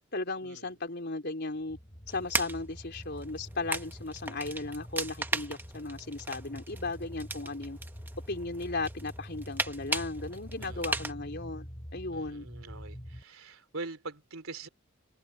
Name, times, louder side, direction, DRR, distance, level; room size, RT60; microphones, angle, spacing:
voice 1, 0.1-1.8 2.1-7.8 8.3-11.6 11.9-12.5, left 3 dB, 50° left, 4.0 m, -36 dB
sound 1, 1.6-13.2, equal, 25° left, 6.1 m, -46 dB
sound 2, 2.1-11.1, right 2 dB, 10° right, 1.1 m, -37 dB
voice 2, 10.6-11.0 12.1-14.7, right 3 dB, 70° right, 3.6 m, -43 dB
head